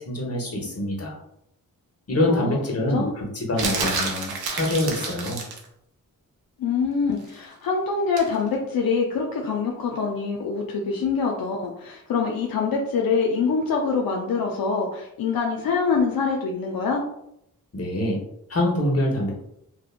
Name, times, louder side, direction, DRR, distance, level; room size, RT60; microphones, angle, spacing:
voice 1, 0.1-1.2 2.1-5.4 17.7-18.2 18.5-19.3, left 1 dB, 40° left, -1 dB, 0.9 m, -25 dB
voice 2, 2.3-2.6 2.9-3.1 6.6-17.0, left 5 dB, 75° left, 0 dB, 0.5 m, -25 dB
sound 1, 3.6-5.7 8.2-8.4, right 4 dB, 85° right, 0.6 m, -28 dB
2.8 x 2.1 x 2.4 m, 0.76 s
cardioid pair, 65°, 36 cm